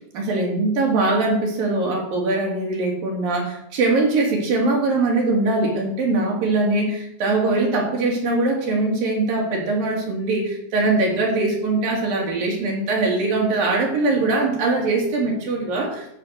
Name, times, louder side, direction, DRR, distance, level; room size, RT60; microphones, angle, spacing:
voice 1, 0.1-16.1, right 2 dB, 60° right, -1 dB, 4.4 m, -22 dB
14.0 x 7.1 x 6.6 m, 0.73 s
omnidirectional pair, 4.5 m